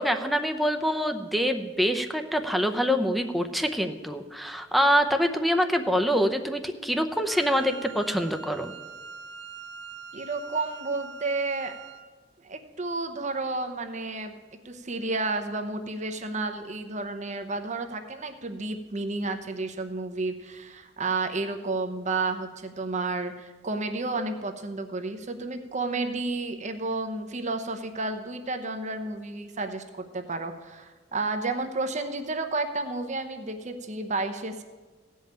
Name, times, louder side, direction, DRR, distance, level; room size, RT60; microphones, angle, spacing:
voice 1, 0.0-8.7, equal, ahead, 5 dB, 0.7 m, -25 dB
Wind instrument woodwind instrument, 7.3-12.1, right 5 dB, 80° right, 1.5 m, -43 dB
voice 2, 10.1-11.7 12.4-14.4 14.6-34.6, right 3 dB, 40° right, 8 dB, 0.8 m, -31 dB
16.0 x 5.6 x 8.8 m, 1.3 s
head